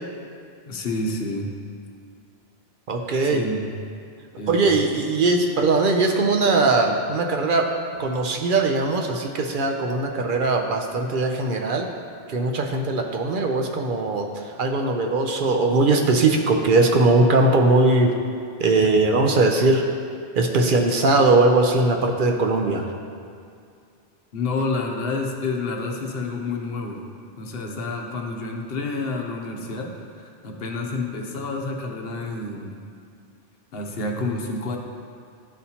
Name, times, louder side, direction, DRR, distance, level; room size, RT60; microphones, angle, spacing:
voice 1, 0.7-1.5 3.3-3.7 4.4-4.6 24.3-27.0 27.4-32.7 33.7-34.8, left 3 dB, 70° left, 2 dB, 0.9 m, -29 dB
voice 2, 2.9-3.4 4.5-7.7 8.0-11.9 12.3-14.3 14.6-18.1 18.6-19.8 20.4-22.8, right 3 dB, 60° right, 3 dB, 0.7 m, -20 dB
11.5 x 4.1 x 2.8 m, 2.4 s
omnidirectional pair, 1.1 m